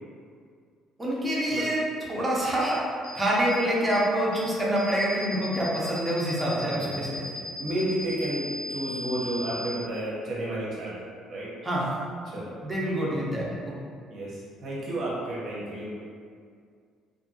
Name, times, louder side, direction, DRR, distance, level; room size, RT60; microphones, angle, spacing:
voice 1, 1.0-1.8 2.1-2.8 3.1-7.2 11.6-11.8 12.6-13.7, right 1 dB, 10° right, -6 dB, 0.6 m, -26 dB
sound 1, 2.6-2.7 3.0-3.1 3.5-3.6 3.9-4.0 4.3-4.4 4.7-9.7, left 1 dB, 70° left, 0.9 m, -37 dB
voice 2, 6.4-6.9 7.6-11.0 11.3-11.5 12.3-12.6 14.1-16.0, right 1 dB, 50° right, -6 dB, 0.6 m, -32 dB
2.6 x 2.5 x 2.6 m, 2.2 s
cardioid pair, 145°, 0 cm